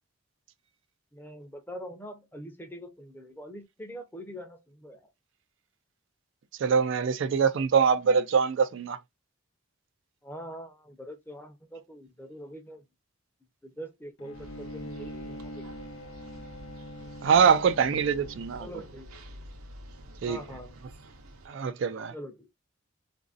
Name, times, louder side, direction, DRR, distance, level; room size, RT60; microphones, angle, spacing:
voice 1, 1.1-5.1 10.2-12.8 13.6-15.6 18.6-19.1 20.2-20.8 22.1-22.5, equal, 10° left, 0.6 m, -43 dB
voice 2, 6.6-9.0 17.2-18.7 20.2-20.4 21.5-22.1, right 6 dB, 60° right, 0.3 m, -24 dB
Bowed string instrument, 14.2-18.9, equal, 65° left, 0.6 m, -43 dB
sound 1, 14.3-21.5, right 1 dB, 85° right, 0.7 m, -48 dB
3.9 x 2.6 x 2.4 m
head